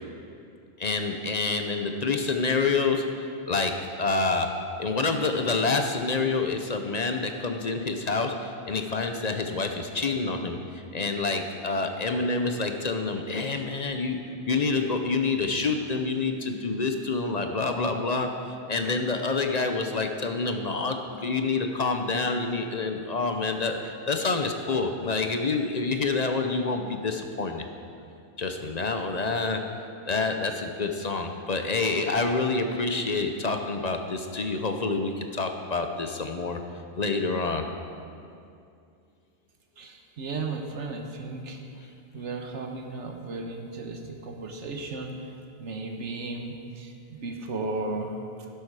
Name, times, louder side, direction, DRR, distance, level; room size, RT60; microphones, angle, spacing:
voice 1, 0.8-4.5 4.8-10.6 10.9-18.3 18.7-27.6 28.4-29.6 30.1-36.6 37.0-37.7, left 3 dB, 40° left, 5 dB, 0.8 m, -27 dB
voice 2, 39.8-41.6 42.1-48.5, right 3 dB, 85° right, 3 dB, 1.4 m, -35 dB
11.5 x 11.5 x 4.8 m, 2.5 s
omnidirectional pair, 1.2 m